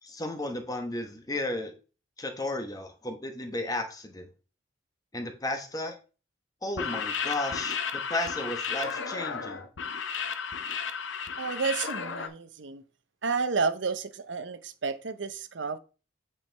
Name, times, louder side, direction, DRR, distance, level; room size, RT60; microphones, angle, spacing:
voice 1, 0.0-1.7 2.2-4.3 5.1-6.0 6.6-7.8 8.1-9.6, left 1 dB, 20° left, 0.9 m, -33 dB
sound 1, 6.7-12.3, left 6 dB, 75° left, 0.7 m, -33 dB
voice 2, 11.4-12.8 13.2-15.8, right 4 dB, 70° right, 0.7 m, -31 dB
8.5 x 4.5 x 3.3 m
head